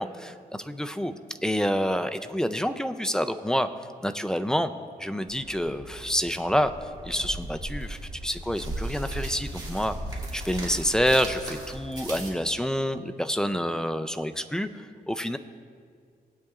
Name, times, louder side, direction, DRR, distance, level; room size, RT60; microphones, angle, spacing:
voice 1, 0.0-3.7 4.0-4.7 5.0-10.0 10.3-15.4, equal, 5° left, 10 dB, 0.4 m, -28 dB
sound 1, 5.3-12.3, right 1 dB, 25° right, 2.1 m, -37 dB
19.0 x 8.6 x 2.4 m, 2.1 s
wide cardioid pair, 130°, 16 cm